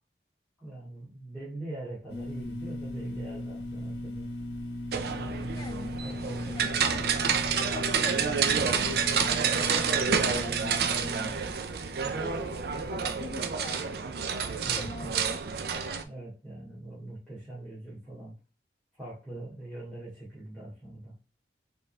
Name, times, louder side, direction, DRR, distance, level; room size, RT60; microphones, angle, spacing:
voice 1, 0.6-4.3 5.1-5.7 6.0-6.8 14.6-15.2 16.0-18.4 19.0-21.2, right 2 dB, 5° right, -10 dB, 2.1 m, -42 dB
sound 1, 2.1-13.3, left 1 dB, 65° left, 1.5 m, -38 dB
sound 2, 4.9-16.0, right 6 dB, 55° right, 0.4 m, -29 dB
voice 2, 5.6-5.9 6.3-6.7 7.5-11.4 12.1-12.6 12.9-14.0 14.8-15.4, left 1 dB, 25° left, 4 dB, 0.5 m, -42 dB
4.2 x 3.8 x 3.3 m, 0.32 s
head